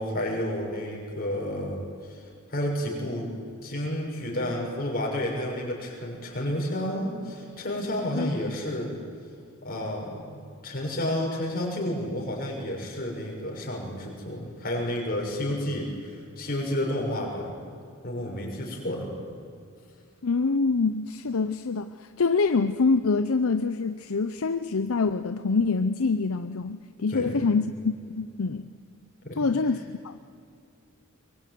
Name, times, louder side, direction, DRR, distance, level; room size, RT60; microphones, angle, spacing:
voice 1, 0.0-3.3 3.6-9.0 9.6-17.6 18.0-19.1 27.1-27.5 29.2-29.5, left 1 dB, 40° left, -1 dB, 6.5 m, -31 dB
voice 2, 20.2-27.7 28.1-28.7 29.4-30.1, left 4 dB, 70° left, 10 dB, 0.7 m, -25 dB
23.0 x 23.0 x 9.5 m, 2.4 s
head